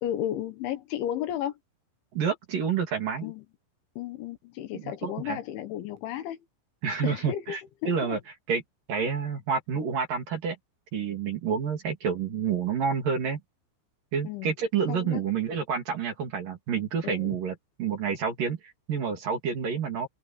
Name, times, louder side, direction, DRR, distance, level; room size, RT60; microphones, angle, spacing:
voice 1, 0.0-1.6 3.2-3.5 4.0-6.4 7.0-7.6 7.8-8.2 14.2-14.5 14.9-15.2 17.0-17.4, left 11 dB, 70° left, 3.5 m, -33 dB
voice 2, 2.1-3.3 4.8-5.4 6.8-7.6 7.9-8.2 8.5-8.6 8.9-10.6 10.9-13.4 14.1-20.1, right 6 dB, 50° right, 3.8 m, -29 dB
open air
omnidirectional pair, 5.9 m